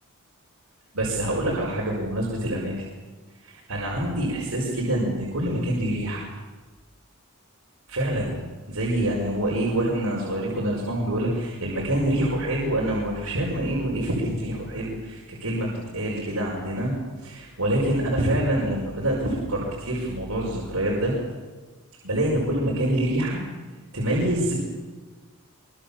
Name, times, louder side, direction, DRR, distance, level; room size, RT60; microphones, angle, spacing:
voice 1, 0.9-2.7 3.4-6.2 7.9-8.3 8.7-15.7 15.9-16.9 17.2-21.1 22.0-23.4 23.9-24.5, right 1 dB, 80° right, -4 dB, 5.4 m, -26 dB
24.0 x 23.5 x 7.3 m, 1.3 s
head